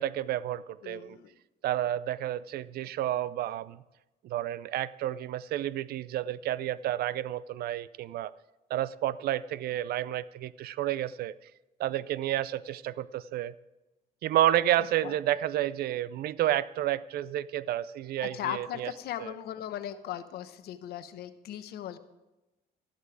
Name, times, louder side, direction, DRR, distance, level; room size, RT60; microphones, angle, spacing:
voice 1, 0.0-1.2 1.6-3.8 4.2-8.3 8.7-11.3 11.8-13.5 14.2-18.9 19.2-19.3, right 12 dB, 65° right, 0.5 m, -30 dB
voice 2, 0.8-1.3 15.0-15.1 18.2-22.0, left 11 dB, 70° left, 1.0 m, -38 dB
13.0 x 11.0 x 4.8 m
cardioid pair, 110°, 17 cm